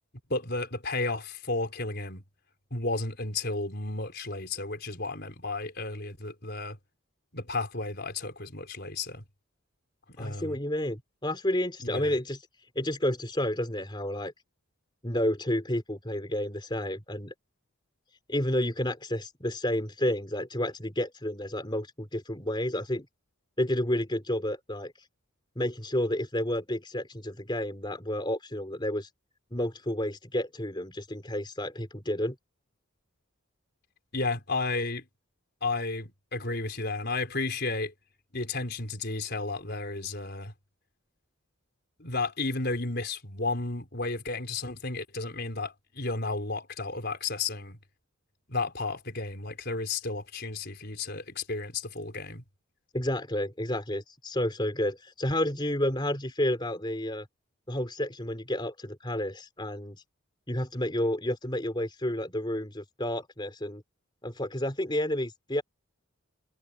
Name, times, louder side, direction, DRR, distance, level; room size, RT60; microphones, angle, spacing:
voice 1, 0.3-2.2 2.7-6.8 7.3-9.2 10.2-10.6 11.8-12.1 34.1-35.0 35.6-37.9 38.3-40.5 42.0-47.8 48.5-52.4, left 3 dB, 50° left, 4.7 m, -33 dB
voice 2, 10.2-12.4 12.8-14.3 15.0-17.3 18.3-23.1 23.6-24.9 25.6-29.1 29.5-32.4 52.9-57.3 57.7-60.0 60.5-63.8 64.2-65.6, left 1 dB, 20° left, 3.6 m, -30 dB
head